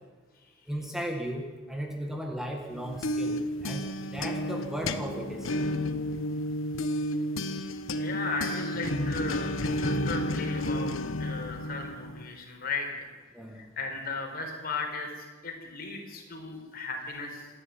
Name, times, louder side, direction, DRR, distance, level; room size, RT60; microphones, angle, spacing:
voice 1, 0.7-5.5 13.3-13.6, right 1 dB, ahead, 2 dB, 1.7 m, -36 dB
sound 1, 2.7-12.4, left 1 dB, 80° left, 1.2 m, -31 dB
voice 2, 8.0-13.1 13.5-17.5, left 3 dB, 50° left, 2 dB, 4.7 m, -36 dB
26.5 x 11.0 x 9.2 m, 1.4 s
head